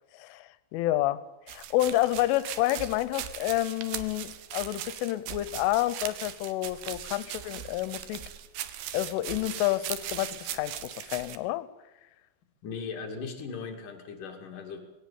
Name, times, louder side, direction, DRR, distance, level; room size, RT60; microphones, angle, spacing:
voice 1, 0.1-8.3 8.9-11.7, left 15 dB, 85° left, 15 dB, 3.4 m, -29 dB
sound 1, 1.5-11.4, right 11 dB, 75° right, 2.2 m, -39 dB
voice 2, 12.6-14.8, left 5 dB, 50° left, 3 dB, 3.4 m, -38 dB
20.0 x 17.5 x 8.6 m, 1.0 s
omnidirectional pair, 5.6 m